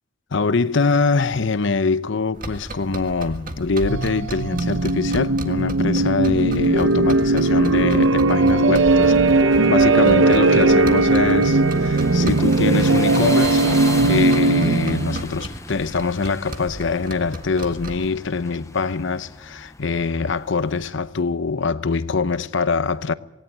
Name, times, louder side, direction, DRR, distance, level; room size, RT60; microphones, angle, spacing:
voice 1, 0.3-9.1 9.7-13.7 14.1-23.1, left 4 dB, 65° left, 0.8 m, -23 dB
sound 1, 2.3-18.1, right 1 dB, 45° right, 1.7 m, -35 dB
sound 2, 3.9-15.3, right 2 dB, 70° right, 0.7 m, -18 dB
sound 3, 8.7-20.9, left 2 dB, 15° left, 0.8 m, -36 dB
18.5 x 17.5 x 9.3 m
head